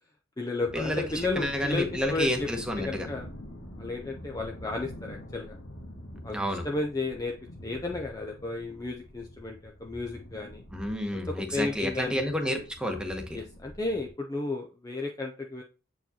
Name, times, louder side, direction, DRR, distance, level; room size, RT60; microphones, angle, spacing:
voice 1, 0.4-2.5 2.8-3.3 3.8-5.6 6.2-7.3 7.6-10.6 11.1-12.2 13.3-15.6, left 3 dB, 15° left, 1 dB, 0.5 m, -33 dB
sound 1, 0.6-14.1, equal, 90° left, 1.7 m, -45 dB
voice 2, 1.4-3.1 6.3-6.6 10.7-13.4, equal, 5° right, 3 dB, 1.0 m, -30 dB
7.6 x 4.6 x 2.8 m, 0.34 s
head